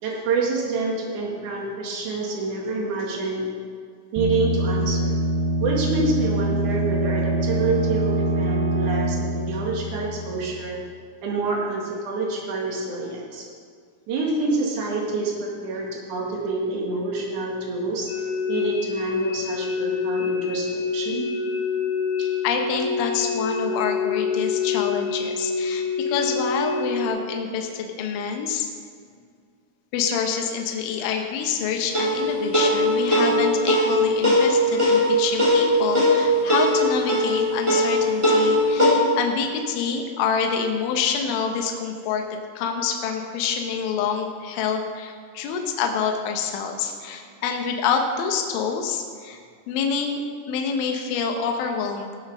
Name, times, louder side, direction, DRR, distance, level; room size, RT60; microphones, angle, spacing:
voice 1, 0.0-3.4 4.1-5.2 5.6-10.8 11.2-13.5 14.1-18.1 18.5-21.3 22.2-22.3, right 3 dB, 50° right, -2 dB, 2.6 m, -27 dB
sound 1, 4.2-10.8, right 1 dB, 85° right, 3.8 m, -24 dB
sound 2, 18.1-27.1, left 5 dB, 55° left, 3.1 m, -26 dB
voice 2, 22.4-28.7 29.9-42.2 42.6-49.4 49.7-50.2 50.5-52.1, left 6 dB, 75° left, 3 dB, 3.4 m, -26 dB
sound 3, 31.9-38.9, left 1 dB, 25° right, 0.7 m, -20 dB
18.0 x 6.4 x 6.3 m, 2.1 s
omnidirectional pair, 5.8 m